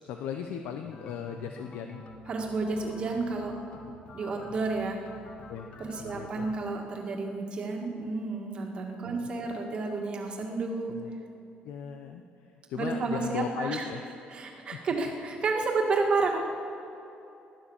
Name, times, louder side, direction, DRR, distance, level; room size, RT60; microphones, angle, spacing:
voice 1, 0.0-2.0 3.7-3.9 5.5-5.7 6.0-6.5 9.0-9.3 10.4-10.5 10.9-11.1 11.6-14.0 14.7-14.8, left 8 dB, 90° left, 5 dB, 0.8 m, -38 dB
sound 1, 0.8-6.7, left 4 dB, 40° left, 1.0 m, -49 dB
voice 2, 2.3-3.5 4.1-5.0 5.8-10.9 12.8-13.8 14.3-16.4, right 3 dB, 35° right, 1 dB, 2.1 m, -31 dB
15.5 x 12.0 x 7.2 m, 2.9 s
cardioid pair, 165°, 3 cm